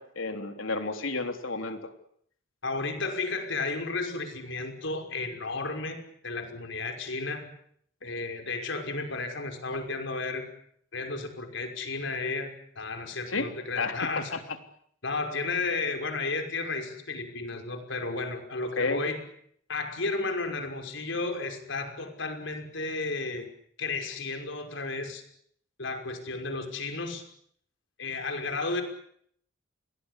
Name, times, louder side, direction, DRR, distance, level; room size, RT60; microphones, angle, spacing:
voice 1, 0.0-1.9 13.3-13.5 13.8-14.0 14.3-14.4 18.8-19.0, left 3 dB, 90° left, 7 dB, 3.6 m, -31 dB
voice 2, 2.6-6.0 6.2-7.5 8.0-10.4 10.9-14.3 15.0-19.2 19.7-23.5 23.8-25.2 25.8-27.2 28.0-28.8, left 3 dB, 65° left, 6 dB, 5.8 m, -33 dB
29.5 x 23.0 x 8.3 m, 0.68 s
head